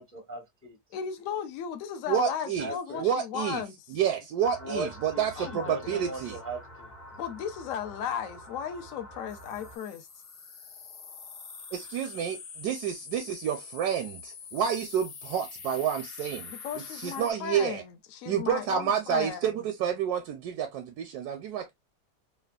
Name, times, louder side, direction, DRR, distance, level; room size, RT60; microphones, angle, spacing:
voice 1, 0.0-0.8 2.6-3.1 4.6-6.9, right 1 dB, 20° left, 0.3 m, -38 dB
voice 2, 0.9-3.7 5.4-6.1 7.2-10.1 16.6-19.6, left 8 dB, 65° left, 0.9 m, -36 dB
voice 3, 2.1-2.7 3.0-3.6 3.9-6.4 11.7-16.5 16.9-17.8 18.3-21.7, right 8 dB, 80° right, 1.1 m, -29 dB
sound 1, 4.4-9.8, equal, 35° left, 0.7 m, -47 dB
sound 2, 9.3-17.3, left 6 dB, 85° left, 1.4 m, -45 dB
3.3 x 2.2 x 2.2 m
omnidirectional pair, 1.7 m